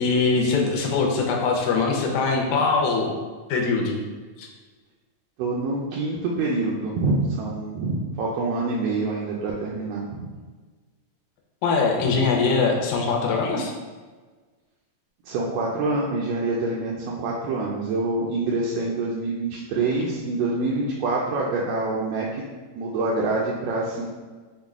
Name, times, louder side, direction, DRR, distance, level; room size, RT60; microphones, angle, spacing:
voice 1, 0.0-3.2 3.5-4.0 4.4-4.5 11.6-13.7, left 4 dB, 80° left, 1 dB, 1.9 m, -22 dB
voice 2, 5.4-10.2 12.0-12.1 15.3-22.4 22.8-24.2, right 3 dB, 80° right, -4 dB, 1.5 m, -26 dB
5.4 x 2.1 x 3.5 m, 1.4 s
omnidirectional pair, 3.3 m